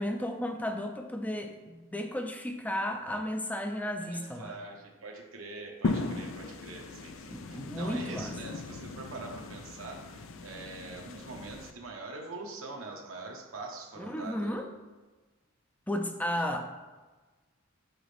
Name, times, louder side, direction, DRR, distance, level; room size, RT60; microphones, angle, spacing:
voice 1, 0.0-4.5 7.3-8.3 14.0-14.7 15.9-16.8, left 1 dB, 5° left, 5 dB, 0.4 m, -34 dB
voice 2, 4.0-14.6 16.3-16.4, right 3 dB, 85° right, 0 dB, 1.2 m, -44 dB
sound 1, 5.8-11.7, left 3 dB, 70° left, 0.4 m, -38 dB
6.3 x 5.1 x 3.4 m, 1.3 s
head